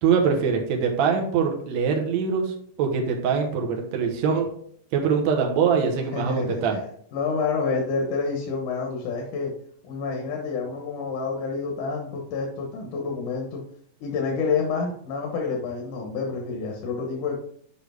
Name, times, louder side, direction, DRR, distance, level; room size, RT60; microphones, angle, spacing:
voice 1, 0.0-4.5 4.9-6.7, right 6 dB, 70° right, 2 dB, 2.3 m, -23 dB
voice 2, 6.0-6.8 7.1-9.5 9.8-13.6 14.0-17.4, left 4 dB, 90° left, 0 dB, 2.7 m, -28 dB
8.4 x 5.5 x 3.5 m, 0.63 s
omnidirectional pair, 3.4 m